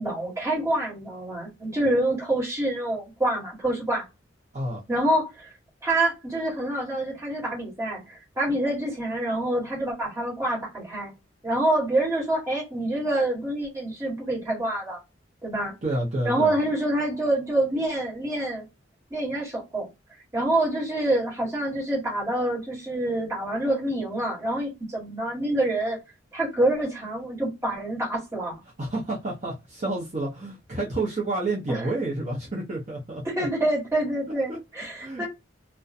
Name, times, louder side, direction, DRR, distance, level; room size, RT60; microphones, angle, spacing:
voice 1, 0.0-4.1 4.9-5.5 5.8-11.1 11.4-15.0 15.4-15.7 16.2-18.6 19.1-19.9 20.3-26.0 26.3-28.5 31.7-31.8 33.2-35.3, right 1 dB, 15° right, 1.5 m, -26 dB
voice 2, 15.8-16.6 28.8-33.2 34.5-34.6 35.0-35.2, right 2 dB, 40° right, 0.7 m, -29 dB
2.4 x 2.1 x 2.6 m
head